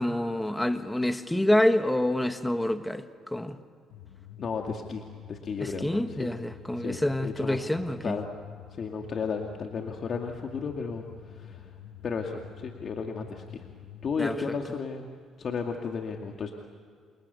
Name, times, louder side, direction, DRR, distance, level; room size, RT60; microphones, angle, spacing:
voice 1, 0.0-3.6 5.6-8.2 14.2-14.4, left 1 dB, 10° left, 8 dB, 1.6 m, -27 dB
sound 1, 3.9-14.3, left 10 dB, 85° left, 1.4 m, -48 dB
voice 2, 4.4-6.3 6.8-7.6 8.0-8.3 8.8-11.7 12.0-13.7 14.0-15.1 15.4-16.5, left 5 dB, 50° left, 2 dB, 2.3 m, -34 dB
28.5 x 28.5 x 7.0 m, 2.1 s
supercardioid pair, 75°, 0 cm